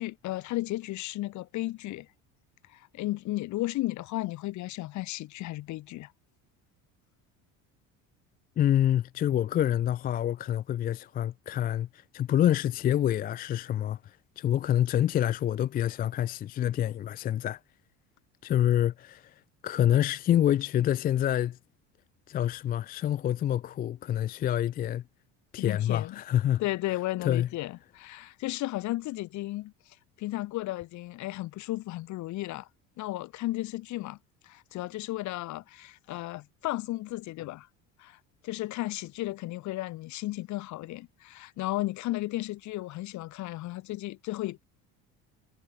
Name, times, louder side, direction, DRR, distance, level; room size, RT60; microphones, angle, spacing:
voice 1, 0.0-2.1 2.7-6.1 25.6-26.2 26.6-32.7 33.0-34.2 34.4-37.7 38.0-44.6, left 17 dB, 60° left, 2.0 m, -34 dB
voice 2, 8.6-17.6 18.4-19.3 19.6-21.6 22.3-25.0 25.5-26.6 27.2-27.5, left 11 dB, 30° left, 0.4 m, -27 dB
cardioid pair, 125°, 32 cm